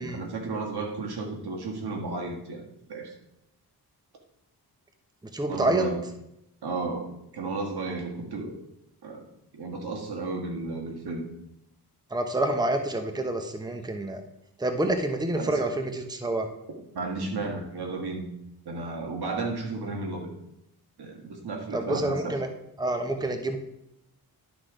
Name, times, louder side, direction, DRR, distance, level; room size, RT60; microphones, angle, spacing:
voice 1, 0.0-3.1 5.5-6.0 6.6-8.6 9.0-9.2 9.5-11.2 15.4-15.5 16.9-18.3 18.7-20.3 21.0-22.3, right 3 dB, 80° right, 2 dB, 1.9 m, -33 dB
voice 2, 5.3-5.9 12.1-14.2 14.6-16.5 21.7-22.5 22.8-23.6, right 2 dB, 10° right, 5 dB, 0.9 m, -27 dB
11.5 x 4.2 x 5.0 m, 0.81 s
cardioid pair, 85°, 38 cm